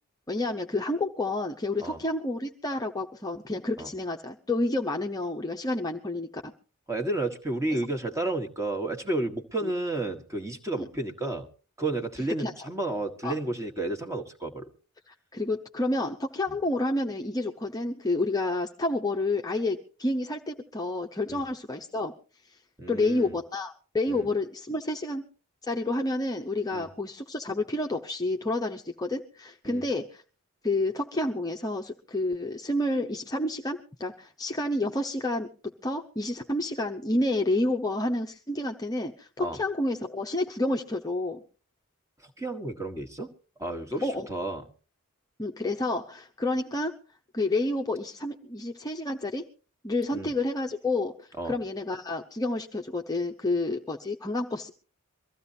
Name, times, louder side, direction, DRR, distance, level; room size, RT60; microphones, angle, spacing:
voice 1, 0.3-6.5 9.6-9.7 10.8-10.9 12.4-12.5 13.2-13.3 15.1-22.1 22.9-25.2 25.7-30.2 30.6-35.5 35.8-41.4 44.0-44.3 45.4-46.9 47.3-49.4 49.8-54.7, left 2 dB, 15° left, 2 dB, 0.8 m, -29 dB
voice 2, 6.9-11.5 11.8-14.7 21.3-21.4 22.8-23.3 24.1-24.3 26.7-26.9 29.6-29.8 39.4-39.6 42.2-43.3 43.6-44.6 50.1-50.3 51.4-51.6, right 2 dB, 15° right, 6 dB, 1.5 m, -32 dB
23.5 x 14.5 x 2.7 m, 0.36 s
head